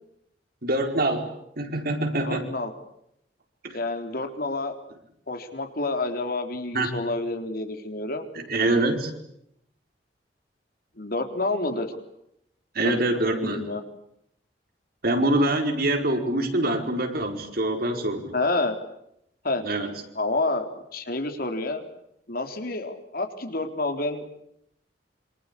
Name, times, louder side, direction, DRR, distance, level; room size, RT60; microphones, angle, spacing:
voice 1, 0.6-1.3 1.6-2.5 3.6-3.8 6.7-6.9 8.3-9.1 12.7-13.7 15.0-18.3 19.6-19.9, right 1 dB, 55° right, 5 dB, 4.7 m, -25 dB
voice 2, 2.3-2.7 3.7-4.8 5.3-8.3 11.0-11.9 12.8-13.0 13.4-13.8 18.3-18.8 19.4-19.6 20.2-21.8 22.3-24.3, left 2 dB, 55° left, 6 dB, 3.7 m, -28 dB
27.5 x 25.5 x 8.4 m, 0.77 s
head